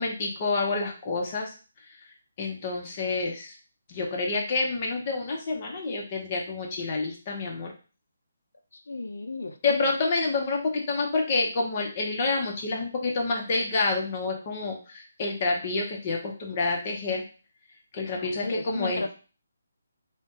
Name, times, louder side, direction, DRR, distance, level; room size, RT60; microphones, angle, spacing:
voice 1, 0.0-1.5 2.4-3.5 3.9-7.7 9.6-17.2 17.9-19.0, left 3 dB, 35° left, 1 dB, 0.8 m, -28 dB
voice 2, 8.7-9.8 18.1-19.1, left 2 dB, 75° left, 6 dB, 0.6 m, -34 dB
2.5 x 2.2 x 3.7 m, 0.35 s
figure-of-eight pair, 155°, 0 cm